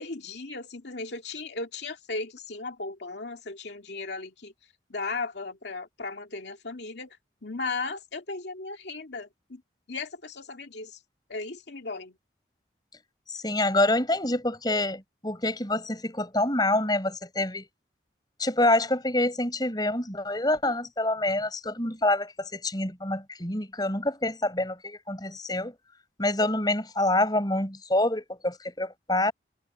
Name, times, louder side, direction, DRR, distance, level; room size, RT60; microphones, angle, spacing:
voice 1, 0.0-4.5 4.9-7.2 7.4-9.6 9.9-11.0 11.3-12.1, left 3 dB, 75° left, 2.3 m, -36 dB
voice 2, 13.3-17.7 18.4-25.7 26.2-29.3, left 1 dB, 20° left, 5.8 m, -26 dB
head